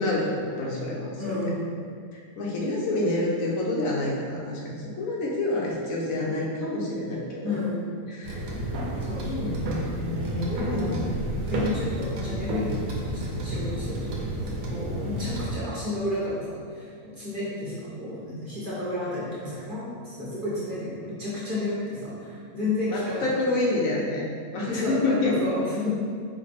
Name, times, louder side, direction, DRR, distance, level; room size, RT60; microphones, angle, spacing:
voice 1, 0.0-1.4 2.1-7.6 8.1-8.5 9.3-11.0 22.9-25.3, left 2 dB, 70° left, -3 dB, 1.1 m, -28 dB
voice 2, 1.2-1.6 7.4-7.9 9.1-9.5 10.4-12.8 13.0-23.3 24.7-25.9, left 2 dB, 40° right, -9 dB, 0.9 m, -32 dB
sound 1, 8.2-15.6, right 1 dB, 80° right, 1.1 m, -31 dB
4.8 x 2.0 x 4.1 m, 2.2 s
omnidirectional pair, 1.5 m